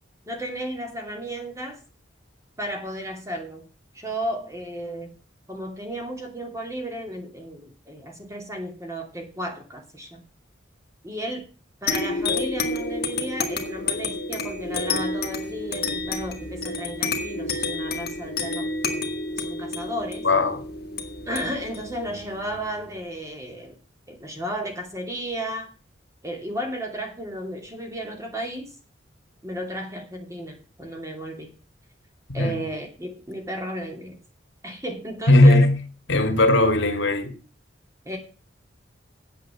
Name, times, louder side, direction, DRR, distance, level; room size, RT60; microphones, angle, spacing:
voice 1, 0.3-1.8 2.6-3.7 3.9-5.1 5.5-10.2 11.0-11.5 11.8-20.2 21.3-23.8 24.1-25.7 26.2-28.7 29.4-31.5 32.3-34.2 34.6-35.7 38.0-38.2, right 1 dB, 15° right, 2.8 m, -33 dB
sound 1, 11.9-22.9, left 3 dB, 55° left, 1.8 m, -30 dB
voice 2, 20.2-20.6 32.4-32.7 35.3-35.8 36.1-37.3, left 2 dB, 70° left, 2.1 m, -17 dB
8.4 x 8.3 x 7.2 m
head